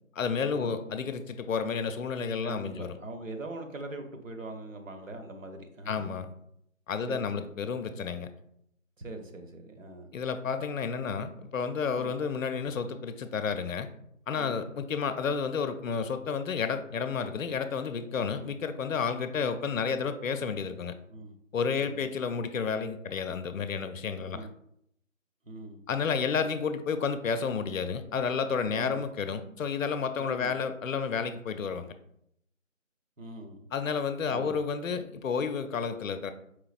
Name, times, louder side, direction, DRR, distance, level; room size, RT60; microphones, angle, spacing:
voice 1, 0.1-3.0 5.9-6.3 6.9-8.3 10.1-13.9 14.3-21.0 21.5-24.5 25.9-31.9 33.7-36.3, left 6 dB, 75° left, 10 dB, 0.5 m, -31 dB
voice 2, 2.4-6.1 7.1-7.5 9.0-10.1 11.9-12.1 14.3-14.7 18.2-18.3 21.1-21.3 21.8-22.0 24.3-24.5 25.5-25.8 28.7-29.0 30.2-30.5 33.2-33.6 34.3-34.6, right 2 dB, 70° right, 5 dB, 0.9 m, -42 dB
4.8 x 3.3 x 2.4 m, 0.76 s
figure-of-eight pair, 170°, 40 cm